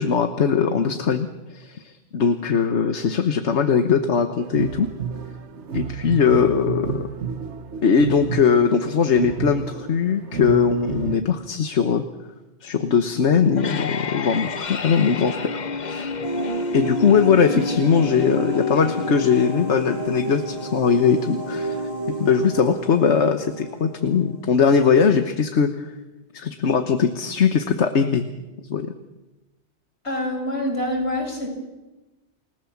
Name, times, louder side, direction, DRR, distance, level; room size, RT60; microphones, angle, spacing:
voice 1, 0.0-4.9 5.7-7.1 7.8-12.0 12.6-16.1 16.7-21.8 22.1-25.9 26.3-28.2 28.6-28.9, left 6 dB, 85° left, 8 dB, 1.5 m, -20 dB
sound 1, 4.4-11.2, right 7 dB, 85° right, 1.5 m, -31 dB
sound 2, 13.3-24.3, left 4 dB, 45° left, 1.0 m, -32 dB
sound 3, 16.2-24.6, right 1 dB, 25° right, 5.0 m, -31 dB
voice 2, 30.0-31.5, left 1 dB, 70° left, 1 dB, 6.6 m, -26 dB
29.5 x 18.5 x 7.3 m, 1.1 s
omnidirectional pair, 1.1 m